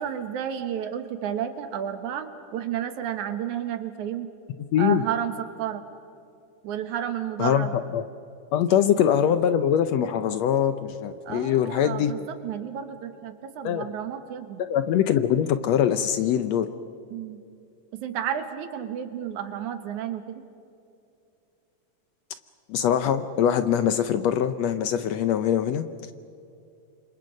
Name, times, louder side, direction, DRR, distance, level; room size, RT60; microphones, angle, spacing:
voice 1, 0.0-4.3 4.8-5.8 6.6-7.7 8.7-8.9 11.3-14.6 17.1-17.4 18.0-20.4, right 9 dB, 70° right, 8 dB, 2.7 m, -31 dB
voice 2, 4.7-5.0 7.4-7.7 7.9-8.0 8.5-12.1 13.6-13.8 14.6-16.7 22.7-25.9, left 9 dB, 75° left, 10 dB, 1.6 m, -23 dB
29.0 x 26.0 x 5.3 m, 2.5 s
omnidirectional pair, 3.6 m